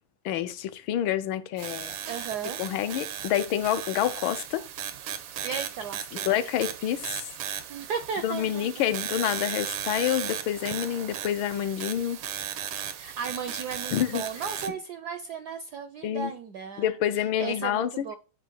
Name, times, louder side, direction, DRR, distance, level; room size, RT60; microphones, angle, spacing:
voice 1, 0.2-2.0 2.6-4.7 6.1-7.2 8.2-12.2 13.9-14.4 16.0-16.3 16.8-18.2, left 11 dB, 75° left, 1.5 m, -28 dB
sound 1, 1.6-14.7, right 10 dB, 90° right, 1.7 m, -36 dB
voice 2, 2.1-2.6 5.4-6.4 7.7-8.7 13.0-16.9 17.4-18.2, right 6 dB, 75° right, 0.9 m, -35 dB
9.2 x 3.1 x 6.0 m
omnidirectional pair, 2.3 m